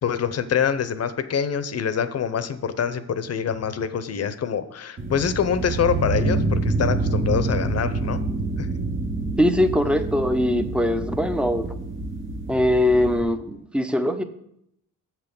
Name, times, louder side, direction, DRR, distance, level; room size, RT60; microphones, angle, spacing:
voice 1, 0.0-8.2 8.6-8.7, left 7 dB, 50° left, 12 dB, 0.7 m, -25 dB
sound 1, 5.0-13.2, right 3 dB, 35° right, 1.1 m, -27 dB
voice 2, 9.4-11.7 12.5-14.2, left 1 dB, 5° right, 9 dB, 0.6 m, -21 dB
7.4 x 5.9 x 6.8 m, 0.76 s
cardioid pair, 120°, 33 cm